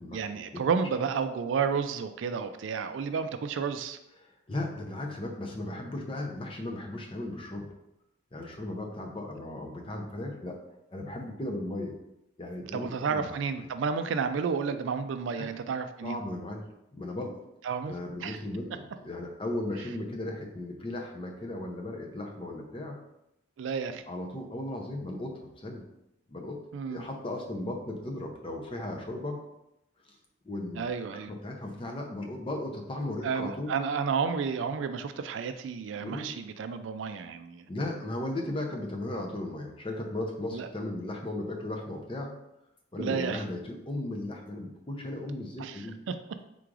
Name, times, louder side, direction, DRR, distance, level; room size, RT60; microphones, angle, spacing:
voice 1, 0.1-4.0 12.7-16.2 17.6-17.9 18.2-18.4 23.6-24.0 26.7-27.0 30.8-31.3 33.2-37.7 40.5-40.7 43.0-43.4 45.6-45.8 46.1-46.2, right 6 dB, 75° right, 9 dB, 0.3 m, -31 dB
voice 2, 4.2-7.7 8.3-10.6 10.9-11.9 12.4-13.7 15.3-15.5 16.0-17.4 17.8-23.0 24.1-25.8 26.3-26.6 26.9-29.4 30.4-33.7 36.0-36.3 37.7-42.3 42.9-46.0, left 1 dB, 25° left, 2 dB, 0.6 m, -36 dB
3.8 x 2.5 x 4.6 m, 0.83 s
head